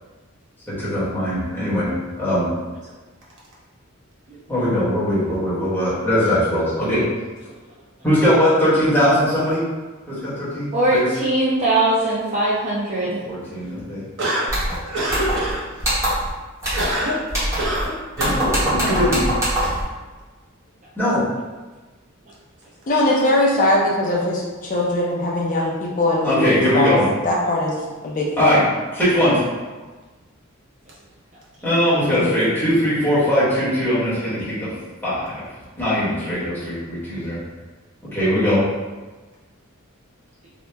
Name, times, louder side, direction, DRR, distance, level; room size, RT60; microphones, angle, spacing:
voice 1, 0.7-2.5 4.5-7.1 8.0-9.6 10.1-11.1 13.0-14.0 18.2-19.2 20.9-21.2 26.2-27.0 28.4-28.6 28.9-29.4 31.6-34.7 35.0-35.5 35.8-37.4 38.1-38.7, equal, 10° left, -11 dB, 1.1 m, -20 dB
voice 2, 10.7-13.2, right 2 dB, 35° right, -6 dB, 0.4 m, -20 dB
voice 3, 14.2-14.5 14.8-16.2 16.7-17.3 17.6-18.6 18.9-19.1, right 1 dB, 60° right, -6 dB, 0.8 m, -26 dB
sound 1, 14.5-14.8 15.1-15.5 15.8-16.3 16.6-16.9 17.3-17.9 18.2-19.8, right 1 dB, 15° right, 0.9 m, -23 dB
voice 4, 22.9-26.9 27.2-27.7 28.0-28.6 32.1-32.3, left 1 dB, 40° left, -3 dB, 0.4 m, -21 dB
2.9 x 2.1 x 3.3 m, 1.3 s
head